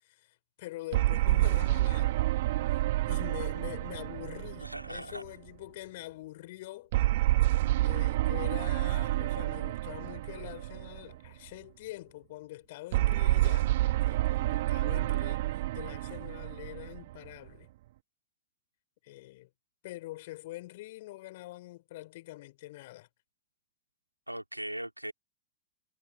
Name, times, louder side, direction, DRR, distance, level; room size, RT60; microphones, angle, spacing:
voice 1, 0.0-2.2 2.7-2.8 3.1-6.9 7.8-13.7 14.0-15.5 15.7-17.7 19.0-19.5 19.8-23.1, left 18 dB, 50° left, 5.8 m, -44 dB
sound 1, 0.9-5.5 6.9-11.3 12.9-17.5, right 16 dB, 55° right, 2.0 m, -28 dB
voice 2, 4.6-5.2 24.3-25.1, right 1 dB, 90° right, 3.4 m, -39 dB
figure-of-eight pair, 90°, 0 cm